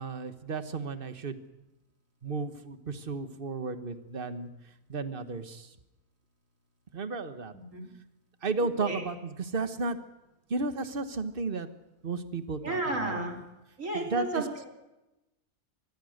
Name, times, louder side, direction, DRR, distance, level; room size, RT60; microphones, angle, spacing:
voice 1, 0.0-1.4 2.2-4.5 4.9-5.7 6.9-7.5 8.4-10.0 10.5-11.7 12.0-13.2 13.9-14.5, right 3 dB, 40° right, 10 dB, 1.5 m, -33 dB
voice 2, 12.6-13.4 13.8-14.7, right 2 dB, 60° right, 2 dB, 3.9 m, -32 dB
25.0 x 20.5 x 6.6 m, 0.98 s
omnidirectional pair, 1.5 m